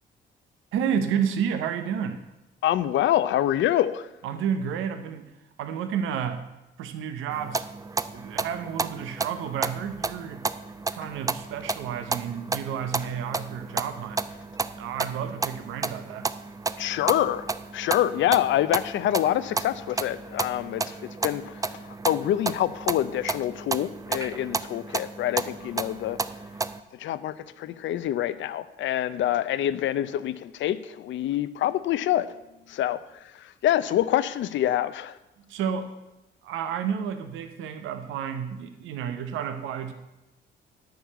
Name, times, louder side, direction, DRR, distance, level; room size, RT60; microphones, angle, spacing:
voice 1, 0.7-2.2 4.2-5.3 5.6-6.5 6.8-7.7 8.1-10.4 10.9-14.2 14.8-16.3 35.5-35.9 36.4-39.9, right 8 dB, 90° right, 8 dB, 0.8 m, -31 dB
voice 2, 2.6-4.1 16.8-26.2 26.9-32.3 32.7-35.2, left 12 dB, 70° left, 15 dB, 0.6 m, -26 dB
sound 1, 7.3-26.8, right 3 dB, 15° right, 0.5 m, -32 dB
10.5 x 4.7 x 8.1 m, 0.96 s
cardioid pair, 90°, 20 cm